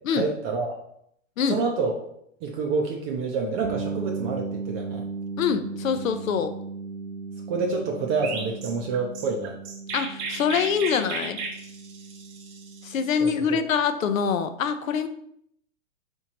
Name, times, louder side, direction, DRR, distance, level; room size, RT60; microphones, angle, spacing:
voice 1, 0.1-0.8 1.5-1.9 2.4-5.0 7.5-9.6 13.2-13.6, right 4 dB, 35° right, 1 dB, 0.5 m, -28 dB
sound 1, 3.6-13.3, right 4 dB, 85° right, 0.8 m, -36 dB
voice 2, 5.4-6.5 9.9-11.4 12.8-15.1, left 7 dB, 80° left, 9 dB, 0.6 m, -25 dB
Chirp tweet, 8.2-13.4, right 4 dB, 55° right, 1.0 m, -35 dB
4.5 x 3.6 x 2.8 m, 0.71 s
hypercardioid pair, 105°, 40 cm